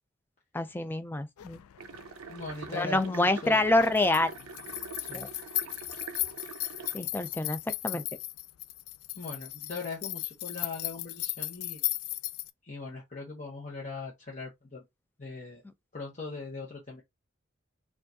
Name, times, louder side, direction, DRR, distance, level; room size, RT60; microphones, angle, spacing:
voice 1, 0.5-1.6 2.7-4.3 5.1-5.3 6.9-8.0, left 2 dB, 10° left, 0.3 m, -27 dB
sound 1, 1.4-12.5, left 17 dB, 90° left, 0.3 m, -37 dB
sound 2, 1.8-7.0, right 5 dB, 90° right, 0.6 m, -45 dB
voice 2, 2.3-3.6 5.0-5.3 9.1-11.8 12.6-14.8 15.2-15.6 15.9-17.0, left 3 dB, 35° left, 0.9 m, -40 dB
4.5 x 2.4 x 2.7 m
head